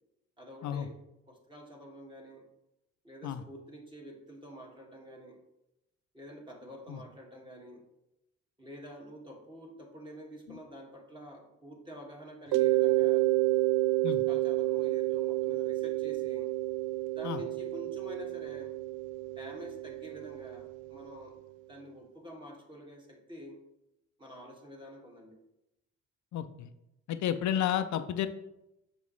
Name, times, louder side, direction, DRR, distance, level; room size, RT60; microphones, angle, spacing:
voice 1, 0.4-1.0 1.3-2.5 3.0-5.4 6.1-7.8 8.6-13.2 14.0-16.5 17.1-18.7 19.4-21.4 21.7-23.6 24.2-25.4, equal, 15° right, -1 dB, 2.0 m, -48 dB
Mallet percussion, 12.5-21.1, right 18 dB, 90° right, 0.5 m, -30 dB
voice 2, 26.3-26.7 27.1-28.3, left 10 dB, 70° left, 9 dB, 0.5 m, -31 dB
6.9 x 5.4 x 3.2 m, 0.87 s
cardioid pair, 90°, 30 cm